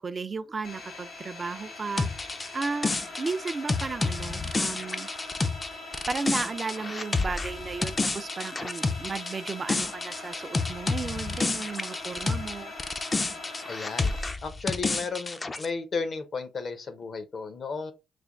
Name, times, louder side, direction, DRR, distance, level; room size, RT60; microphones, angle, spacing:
voice 1, 0.0-2.1 2.5-5.1 6.1-12.7, right 4 dB, 40° right, 0.4 m, -34 dB
sound 1, 0.6-14.3, left 2 dB, 75° left, 1.7 m, -42 dB
sound 2, 2.0-12.5 12.8-15.7, left 3 dB, 30° left, 0.4 m, -30 dB
voice 2, 13.7-14.1 14.4-17.9, left 4 dB, 55° left, 0.7 m, -34 dB
3.3 x 2.2 x 3.7 m
cardioid pair, 80°, 0 cm